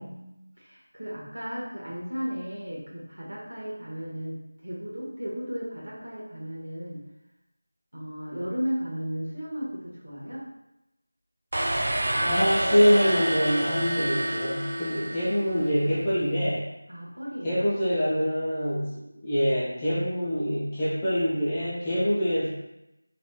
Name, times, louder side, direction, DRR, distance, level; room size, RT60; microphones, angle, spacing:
voice 1, 0.0-7.0 7.9-10.5 15.1-15.4 16.9-17.7, equal, 80° right, -5 dB, 1.2 m, -35 dB
sound 1, 11.5-15.7, right 1 dB, 45° right, 0.4 m, -28 dB
voice 2, 12.2-16.6 17.4-22.5, equal, 15° left, -11 dB, 0.6 m, -25 dB
3.2 x 2.8 x 2.2 m, 0.90 s
figure-of-eight pair, 175°, 0 cm